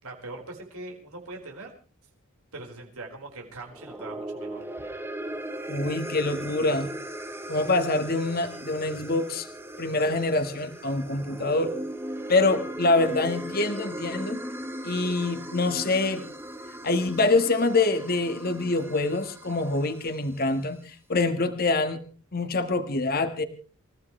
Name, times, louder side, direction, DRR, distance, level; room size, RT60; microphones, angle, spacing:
voice 1, 0.0-1.7 2.5-4.6, right 2 dB, 85° right, 1 dB, 4.7 m, -41 dB
sound 1, 3.7-20.1, right 1 dB, 10° right, 1.2 m, -38 dB
voice 2, 5.7-6.9 7.5-9.5 9.8-11.7 12.3-14.4 14.8-16.2 16.8-22.0 22.3-23.4, left 3 dB, 45° left, 7 dB, 1.4 m, -25 dB
28.0 x 15.5 x 3.2 m, 0.38 s
head